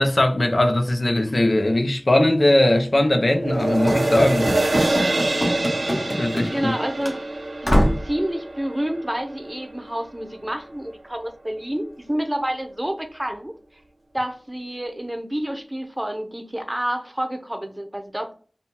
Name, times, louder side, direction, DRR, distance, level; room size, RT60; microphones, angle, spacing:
voice 1, 0.0-4.5 6.1-6.7, left 1 dB, 70° left, 0.7 m, -19 dB
sound 1, 3.3-9.9 10.4-10.5, right 2 dB, 80° right, 0.6 m, -26 dB
Run / Slam, 3.9-6.8 7.0-7.2 7.6-8.1, equal, 40° left, 1.1 m, -24 dB
voice 2, 6.5-7.2 7.6-13.5 14.1-18.3, right 1 dB, 20° right, 0.7 m, -28 dB
3.6 x 2.3 x 4.1 m
wide cardioid pair, 50°, 0 cm